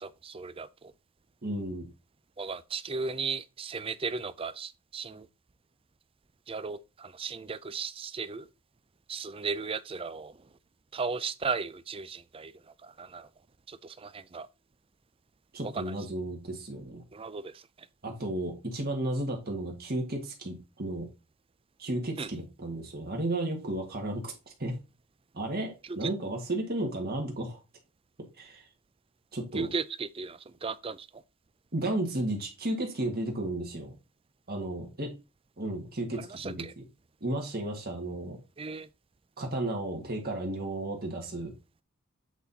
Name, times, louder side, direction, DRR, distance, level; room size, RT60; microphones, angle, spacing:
voice 1, 0.0-0.9 2.4-5.3 6.5-8.5 9.1-10.3 10.9-12.5 12.8-13.3 13.7-14.5 15.7-15.9 17.1-17.6 22.2-22.3 29.5-31.1 36.3-36.7 38.6-38.9, right 4 dB, 25° right, 0.5 m, -36 dB
voice 2, 1.4-1.9 15.5-17.0 18.0-21.1 21.8-24.3 24.6-24.7 25.3-27.6 28.4-28.6 29.3-29.7 31.7-33.9 34.5-35.1 35.6-36.8 37.2-38.4 39.4-41.5, right 1 dB, 45° right, 1.6 m, -33 dB
8.1 x 4.1 x 4.0 m
head